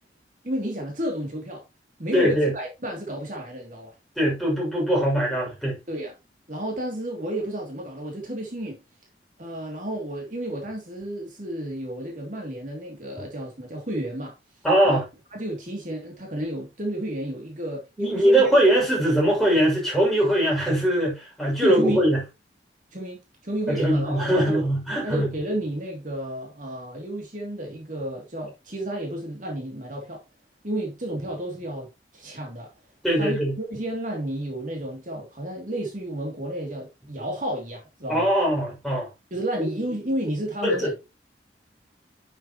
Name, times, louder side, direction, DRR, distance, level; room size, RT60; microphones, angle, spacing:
voice 1, 0.4-1.6 2.0-3.9 5.9-6.1 6.5-8.8 9.4-14.3 14.8-15.0 15.3-18.4 21.6-22.0 22.9-24.6 25.0-30.2 30.6-31.9 32.1-32.7 33.2-38.3 39.3-40.9, right 1 dB, 45° right, 2.9 m, -31 dB
voice 2, 2.1-2.5 4.2-5.8 14.6-15.0 18.0-22.2 23.7-25.3 33.0-33.5 38.1-39.1 39.6-39.7 40.6-40.9, right 1 dB, ahead, 6.5 m, -21 dB
10.5 x 7.8 x 3.1 m
head